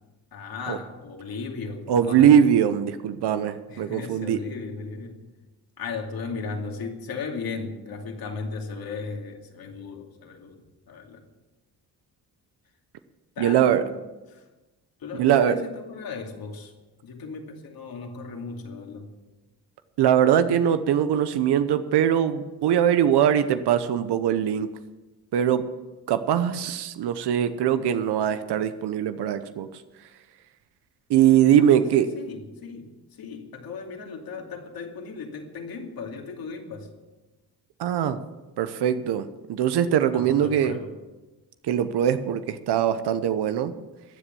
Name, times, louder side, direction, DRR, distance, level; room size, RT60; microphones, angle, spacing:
voice 1, 0.3-2.5 3.7-5.2 5.8-11.2 13.4-14.0 14.3-14.5 15.0-16.7 17.0-19.1 31.6-36.9 40.1-40.9 41.9-42.1, left 4 dB, 65° left, 2 dB, 2.6 m, -36 dB
voice 2, 1.9-4.4 13.4-13.8 15.1-15.6 20.0-24.7 25.3-25.7 26.1-29.7 31.1-32.1 37.8-38.2 38.6-40.7 41.6-43.7, right 9 dB, 85° right, 10 dB, 0.9 m, -21 dB
15.0 x 10.0 x 7.0 m, 1.1 s
cardioid pair, 130°, 39 cm